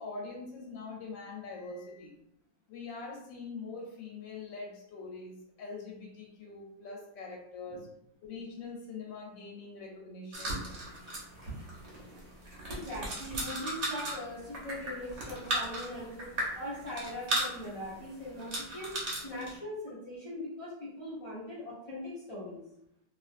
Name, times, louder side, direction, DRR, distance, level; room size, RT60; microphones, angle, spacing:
voice 1, 0.0-2.1 2.7-7.9 8.2-10.6, left 3 dB, 90° left, -1 dB, 1.3 m, -43 dB
sound 1, 10.3-19.6, right 1 dB, 50° right, 0.9 m, -37 dB
voice 2, 12.7-16.3 16.5-22.6, left 1 dB, 35° left, -11 dB, 0.5 m, -41 dB
2.9 x 2.4 x 2.4 m, 0.78 s
omnidirectional pair, 1.9 m